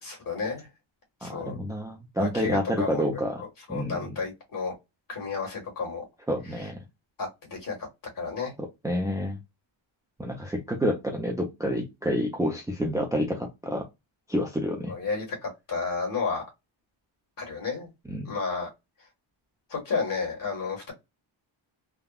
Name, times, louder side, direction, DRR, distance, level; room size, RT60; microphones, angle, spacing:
voice 1, 0.0-0.7 1.2-1.5 2.2-4.7 5.1-6.0 6.6-6.7 7.2-7.8 8.1-8.5 14.9-16.4 17.4-17.9 18.2-18.7 19.7-20.9, left 4 dB, 45° left, 1.6 m, -32 dB
voice 2, 1.2-3.4 3.7-4.1 6.3-6.8 8.8-9.4 10.2-13.8 14.3-14.9 18.1-18.3, equal, 10° right, 0.4 m, -28 dB
3.6 x 2.1 x 2.2 m
wide cardioid pair, 170°, 47 cm